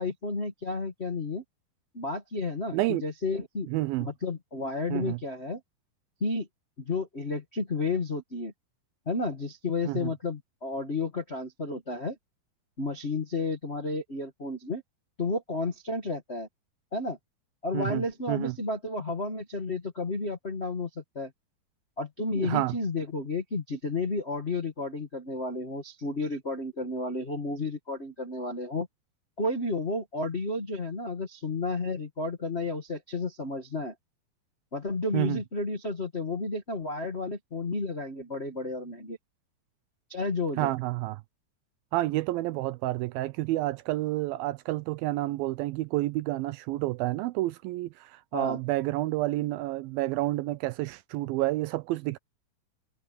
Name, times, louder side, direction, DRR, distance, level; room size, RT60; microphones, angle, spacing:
voice 1, 0.0-1.4 1.9-3.7 4.0-5.6 6.2-6.5 6.8-8.5 9.0-12.2 12.8-14.8 15.2-16.5 16.9-17.2 17.6-21.3 22.0-28.9 29.4-33.9 34.7-39.2 40.1-40.7 48.3-48.6, left 3 dB, 55° left, 0.6 m, -32 dB
voice 2, 2.7-3.0 3.7-4.1 4.9-5.2 9.9-10.1 17.7-18.6 22.4-22.8 35.1-35.4 40.6-41.2 41.9-52.2, right 17 dB, 80° right, 2.2 m, -29 dB
omnidirectional pair, 4.5 m